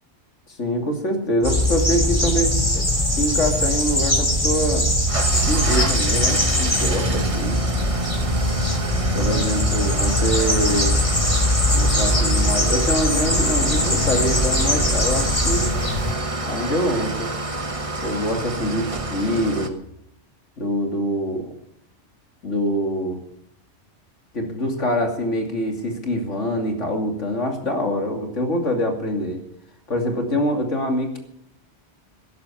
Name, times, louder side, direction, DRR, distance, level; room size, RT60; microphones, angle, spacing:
voice 1, 0.6-2.8 3.2-4.9 5.5-7.6 9.1-11.0 11.7-15.7 16.4-17.3 18.0-19.7 20.6-21.5 22.4-23.2 24.3-29.4 29.9-31.2, equal, 85° left, 3 dB, 3.1 m, -24 dB
sound 1, 1.4-16.1, left 1 dB, 25° left, 3.2 m, -21 dB
Engine starting / Idling, 5.1-19.7, right 2 dB, 30° right, 1.2 m, -27 dB
13.5 x 11.0 x 8.7 m, 0.75 s
omnidirectional pair, 1.2 m